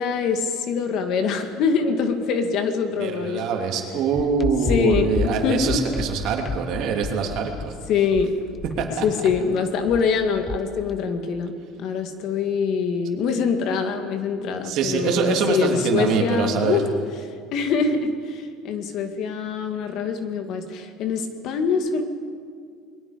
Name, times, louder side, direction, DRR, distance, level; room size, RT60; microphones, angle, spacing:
voice 1, 0.0-3.5 4.7-5.8 7.9-8.4 9.0-11.5 11.8-16.9 17.5-22.0, left 5 dB, 50° left, 7 dB, 2.0 m, -24 dB
voice 2, 3.0-7.7 8.8-9.0 14.6-16.8, right 6 dB, 55° right, 2 dB, 2.9 m, -24 dB
sound 1, 4.1-11.0, left 5 dB, 25° left, 0.6 m, -31 dB
30.0 x 21.5 x 5.2 m, 2.2 s
cardioid pair, 150°, 0 cm